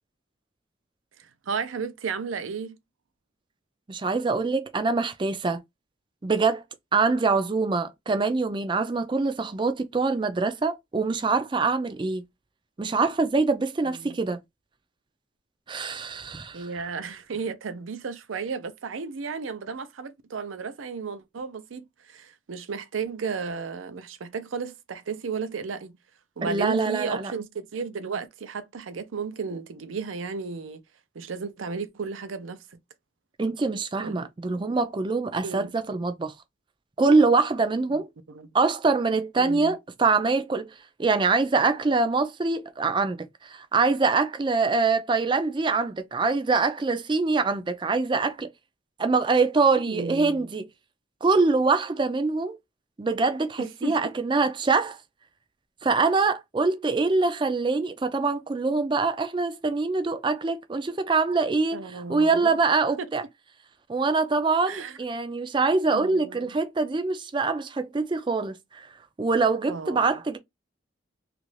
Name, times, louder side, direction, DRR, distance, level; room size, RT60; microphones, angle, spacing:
voice 1, 1.2-2.8 13.8-14.2 16.5-25.9 26.4-30.8 31.1-32.6 34.0-34.3 35.4-35.7 38.3-38.5 39.4-39.7 49.9-50.5 53.6-54.0 61.7-62.6 63.0-63.1 64.7-65.0 65.9-66.5 69.7-70.1, right 5 dB, 85° right, 0.5 m, -34 dB
voice 2, 3.9-5.6 6.2-6.6 6.9-12.2 12.8-14.4 15.7-16.7 26.4-27.3 33.4-36.3 37.0-38.1 38.5-40.7 41.0-48.5 49.0-50.6 51.2-52.6 53.0-55.0 55.8-63.2 63.9-68.9 69.2-70.4, right 4 dB, 25° right, 0.3 m, -24 dB
3.0 x 2.5 x 3.1 m
head